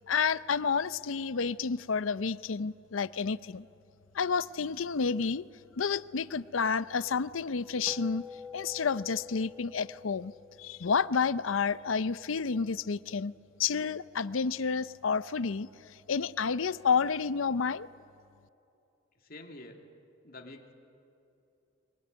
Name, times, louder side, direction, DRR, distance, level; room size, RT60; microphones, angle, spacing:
voice 1, 0.1-3.7 4.1-5.4 5.8-8.2 8.5-10.3 10.6-13.3 13.6-15.7 16.1-17.9, left 5 dB, 85° left, 16 dB, 0.6 m, -30 dB
sound 1, 7.9-12.5, left 4 dB, 5° right, 1.6 m, -48 dB
voice 2, 19.2-19.8 20.2-20.7, left 2 dB, 50° left, 2 dB, 2.6 m, -47 dB
24.0 x 21.5 x 9.5 m, 2.7 s
head